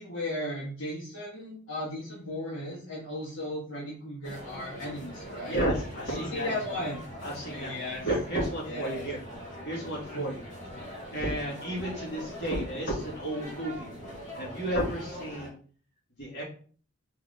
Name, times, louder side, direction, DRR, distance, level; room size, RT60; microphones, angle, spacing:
voice 1, 0.0-5.6 6.1-7.0 7.5-8.1 8.6-9.1 10.1-10.3 11.2-11.4, left 1 dB, 80° left, -6 dB, 1.3 m, -36 dB
sound 1, 4.2-15.5, equal, 35° left, 2.2 m, -42 dB
voice 2, 5.5-6.6 7.2-7.7 8.0-9.2 9.6-10.4 11.1-13.9 14.3-15.5 16.2-16.4, right 1 dB, 60° left, -5 dB, 2.0 m, -32 dB
4.6 x 3.4 x 2.7 m, 0.43 s
head